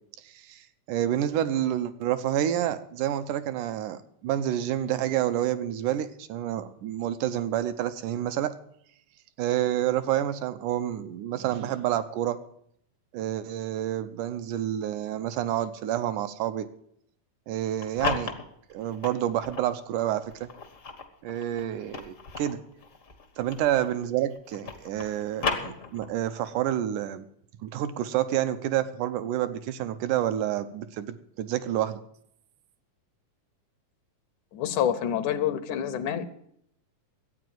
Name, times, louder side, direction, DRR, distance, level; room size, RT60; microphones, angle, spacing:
voice 1, 0.2-8.5 9.4-12.4 13.1-16.7 17.5-18.3 18.7-20.5 21.2-22.6 23.4-27.3 27.6-32.0, right 11 dB, 75° right, 11 dB, 2.2 m, -29 dB
sound 1, 17.6-19.7 20.3-24.0 24.3-26.3, left 5 dB, 55° left, 0.8 m, -35 dB
voice 2, 34.5-36.3, left 9 dB, 75° left, 12 dB, 2.2 m, -27 dB
12.5 x 9.1 x 7.7 m, 0.69 s
omnidirectional pair, 3.7 m